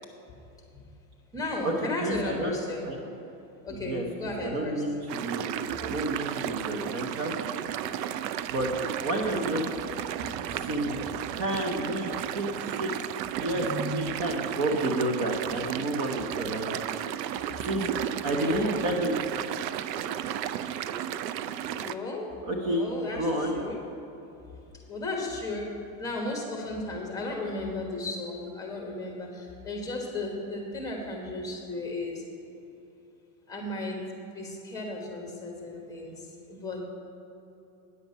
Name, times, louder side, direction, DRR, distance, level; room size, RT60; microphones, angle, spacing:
voice 1, 1.3-2.9 3.6-4.8 9.2-9.5 10.1-10.4 13.5-14.0 18.3-18.7 21.7-22.3 22.6-23.8 24.9-32.2 33.5-34.0 34.3-36.2 36.5-36.8, left 2 dB, 5° left, 0 dB, 1.3 m, -35 dB
voice 2, 2.0-2.6 2.9-3.0 3.7-5.5 5.8-7.3 8.5-8.7 9.0-9.7 10.6-11.0 11.3-12.5 12.8-12.9 13.4-16.7 17.6-18.0 18.2-19.2 20.0-20.1 21.9-22.0 22.4-22.9 23.1-23.6, right 1 dB, 35° right, 2 dB, 0.9 m, -30 dB
sound 1, 5.1-22.0, right 10 dB, 85° right, 0.6 m, -33 dB
9.6 x 7.7 x 5.4 m, 2.9 s
supercardioid pair, 155°, 48 cm